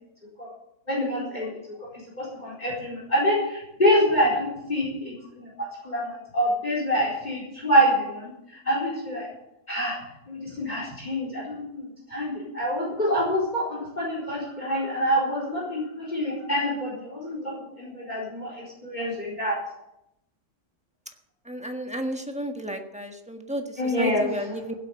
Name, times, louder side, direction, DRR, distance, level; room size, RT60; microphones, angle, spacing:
voice 1, 0.9-1.9 2.2-9.3 9.7-10.0 10.3-19.6 23.8-24.4, equal, 30° left, -3 dB, 4.4 m, -26 dB
voice 2, 21.4-24.7, equal, 5° right, 4 dB, 1.3 m, -33 dB
16.5 x 8.2 x 7.1 m, 0.85 s
omnidirectional pair, 1.6 m